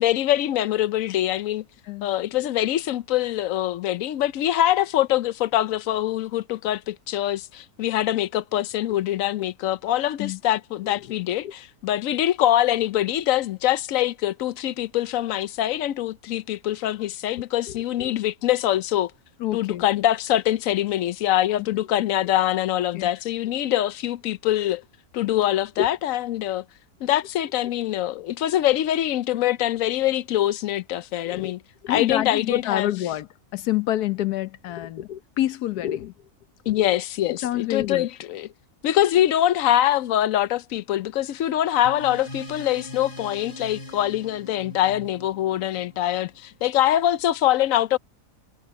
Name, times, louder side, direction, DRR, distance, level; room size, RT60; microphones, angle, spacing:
voice 1, 0.0-1.6 2.0-19.1 19.5-24.8 25.1-26.6 27.0-31.6 31.9-32.9 36.7-38.5 38.8-48.0, left 13 dB, 70° left, 0.9 m, -24 dB
voice 2, 19.4-19.9 22.9-23.1 25.8-25.9 31.2-31.5 31.8-36.1 37.4-38.1, left 13 dB, 85° left, 1.3 m, -27 dB
sound 1, 41.8-46.7, left 1 dB, 35° left, 3.4 m, -41 dB
omnidirectional pair, 1.6 m